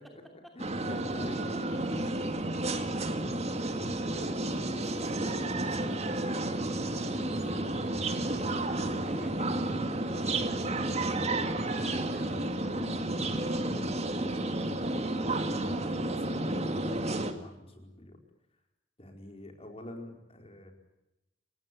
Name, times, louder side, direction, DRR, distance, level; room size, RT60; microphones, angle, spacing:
voice 1, 0.5-1.8 3.9-6.2 7.0-7.3 15.1-18.2 19.0-20.7, left 1 dB, 35° left, 4 dB, 4.8 m, -48 dB
sound 1, 0.6-17.3, right 2 dB, 35° right, 2.2 m, -31 dB
voice 2, 3.5-4.8 5.2-6.5 7.1-8.0 9.0-10.9 11.2-13.8, equal, ahead, 2 dB, 2.9 m, -49 dB
29.5 x 16.5 x 9.5 m, 0.93 s
head